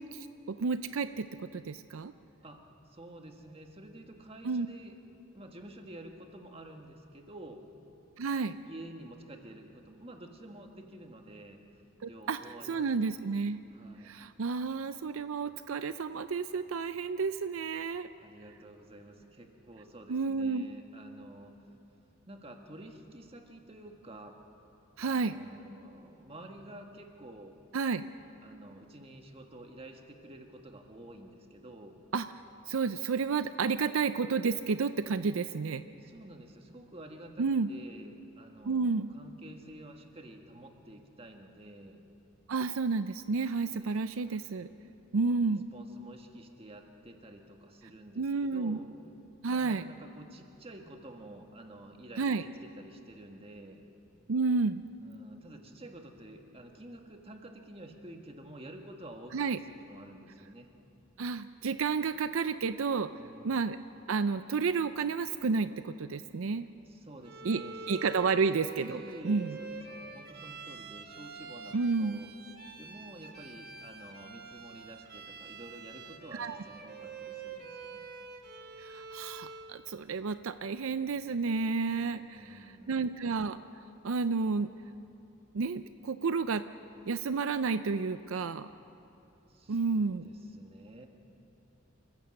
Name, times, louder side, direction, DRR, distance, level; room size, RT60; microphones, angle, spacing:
voice 1, 0.0-2.1 4.4-4.7 8.2-8.6 12.0-12.4 12.7-13.6 14.0-18.1 20.1-20.7 25.0-25.3 27.7-28.0 32.1-32.3 32.7-35.8 37.4-37.7 38.7-39.1 42.5-44.7 45.1-45.7 48.2-48.8 49.4-49.8 52.2-52.4 54.3-54.8 59.3-59.6 61.2-63.1 63.4-63.8 64.1-66.7 67.4-67.6 67.9-69.6 71.7-72.2 76.3-76.6 78.8-82.6 82.9-83.6 84.0-84.7 85.5-86.6 87.1-88.7 89.7-90.3, right 4 dB, 80° right, 12 dB, 0.5 m, -31 dB
voice 2, 2.4-4.9 5.3-7.6 8.7-13.3 13.7-14.2 18.2-21.7 22.3-24.4 25.0-27.6 28.4-32.0 36.0-42.0 43.8-44.7 45.1-48.9 49.5-53.8 55.0-60.7 63.1-63.6 66.8-68.3 68.8-72.3 72.8-78.1 82.1-83.3 89.5-91.1, right 1 dB, 30° right, 3 dB, 1.6 m, -50 dB
Bowed string instrument, 67.2-79.8, right 4 dB, 50° right, 1.3 m, -46 dB
28.5 x 15.0 x 6.5 m, 2.8 s
head